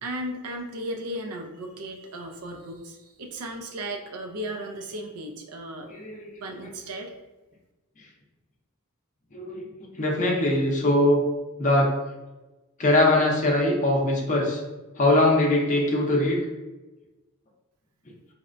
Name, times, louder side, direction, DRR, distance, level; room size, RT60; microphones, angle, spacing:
voice 1, 0.0-5.9 6.4-7.1, right 1 dB, 80° right, 3 dB, 0.5 m, -35 dB
voice 2, 5.8-6.7 9.3-11.2 11.6-11.9 12.8-14.6 15.0-16.4, left 1 dB, 35° left, -1 dB, 0.6 m, -22 dB
4.1 x 2.1 x 2.5 m, 1.1 s
head